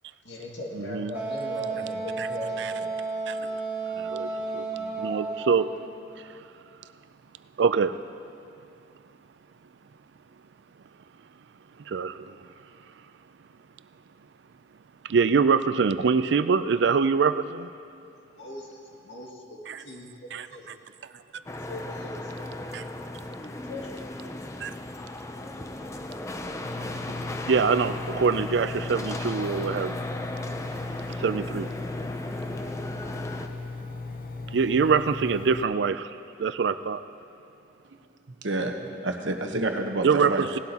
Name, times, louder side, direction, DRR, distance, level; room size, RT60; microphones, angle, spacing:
voice 1, 0.2-2.9 18.0-20.7 21.7-22.5 23.6-23.9, left 2 dB, 75° left, -2 dB, 2.1 m, -40 dB
voice 2, 0.8-1.1 2.2-2.3 3.3-3.4 4.0-4.3 4.5-5.7 7.6-7.9 11.9-12.3 15.1-17.7 19.7-19.8 20.3-20.5 22.7-22.8 24.6-24.7 27.5-29.9 31.2-31.7 34.5-36.1 36.4-37.0 40.0-40.6, right 5 dB, 70° right, 13 dB, 0.4 m, -24 dB
Wind instrument woodwind instrument, 1.1-5.8, right 3 dB, 10° right, 1.5 m, -32 dB
sound 1, 21.5-33.5, left 1 dB, 15° left, 0.5 m, -36 dB
Engine, 26.6-35.6, left 3 dB, 50° left, 0.7 m, -38 dB
voice 3, 38.4-40.4, right 2 dB, 90° right, 4 dB, 1.0 m, -29 dB
18.5 x 12.0 x 2.9 m, 2.5 s
head